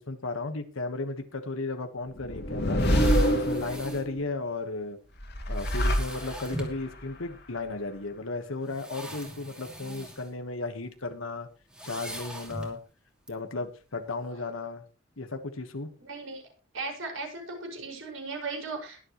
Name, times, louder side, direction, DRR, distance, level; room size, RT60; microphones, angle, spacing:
voice 1, 0.0-2.8 3.3-5.0 5.5-11.5 11.8-12.8 13.3-14.8 15.2-15.9, left 3 dB, 80° left, 7 dB, 1.4 m, -35 dB
sound 1, 2.2-4.2 5.2-6.7, equal, 55° left, 2.4 m, -26 dB
sound 2, 2.8-4.1 5.5-6.8 7.7-7.8 8.6-10.3 10.6-10.9 11.7-12.8 13.3-13.4, right 1 dB, 5° right, 2.7 m, -41 dB
voice 2, 16.0-16.4 16.7-19.0, right 3 dB, 70° right, 2 dB, 5.7 m, -37 dB
21.5 x 7.7 x 3.1 m, 0.33 s
head